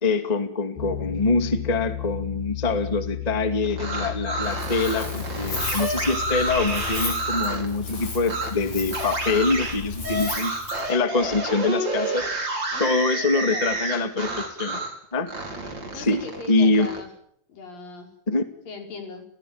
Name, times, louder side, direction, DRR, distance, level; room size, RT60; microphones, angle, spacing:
voice 1, 0.0-10.5 10.9-12.3 12.8-14.8 15.1-15.3 15.9-16.9 18.3-18.5, left 3 dB, 15° left, 9 dB, 1.7 m, -24 dB
Piano, 0.8-10.4, left 14 dB, 90° left, 4.8 m, -35 dB
sound 1, 3.6-7.7 8.2-8.5 8.9-15.0 15.3-17.0, right 2 dB, 30° right, 5.6 m, -29 dB
Wind, 4.4-10.9, left 3 dB, 50° left, 9.1 m, -35 dB
voice 2, 12.7-13.8 15.9-17.1 17.5-18.1 18.7-19.3, left 3 dB, 70° left, 4 dB, 6.9 m, -39 dB
30.0 x 17.0 x 8.9 m, 0.68 s
omnidirectional pair, 4.1 m